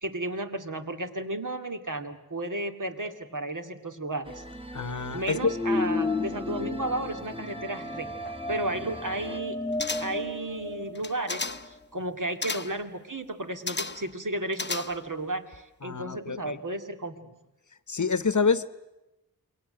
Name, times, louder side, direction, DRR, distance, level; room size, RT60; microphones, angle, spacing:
voice 1, 0.0-4.4 5.1-9.6 10.0-17.3, right 1 dB, 55° right, 6 dB, 2.3 m, -33 dB
sound 1, 4.2-9.4, right 1 dB, 15° right, 1.5 m, -43 dB
voice 2, 4.7-5.5 15.8-16.6 17.9-18.7, left 5 dB, 55° left, 15 dB, 1.1 m, -27 dB
sound 2, 5.4-11.6, left 3 dB, 10° left, 1.7 m, -33 dB
sound 3, 9.8-10.3 11.0-11.7 12.4-12.8 13.7-14.1 14.5-15.2 15.5-15.6, left 3 dB, 30° left, 0.8 m, -34 dB
28.5 x 22.5 x 7.9 m, 0.95 s
wide cardioid pair, 70°, 36 cm